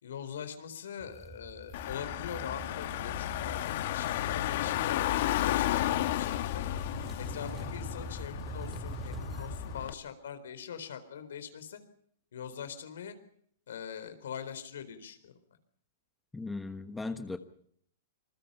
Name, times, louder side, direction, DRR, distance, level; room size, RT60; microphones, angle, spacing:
voice 1, 0.0-6.6 7.2-11.8 12.3-13.2 13.7-15.3, left 8 dB, 80° left, 10 dB, 4.1 m, -43 dB
sound 1, 1.0-9.9, right 4 dB, 15° right, 1.8 m, -45 dB
Car / Engine, 1.7-9.9, left 14 dB, 55° left, 1.3 m, -33 dB
voice 2, 16.3-17.4, left 3 dB, 5° left, 9 dB, 1.3 m, -37 dB
27.0 x 21.5 x 5.6 m, 0.64 s
hypercardioid pair, 150°, 0 cm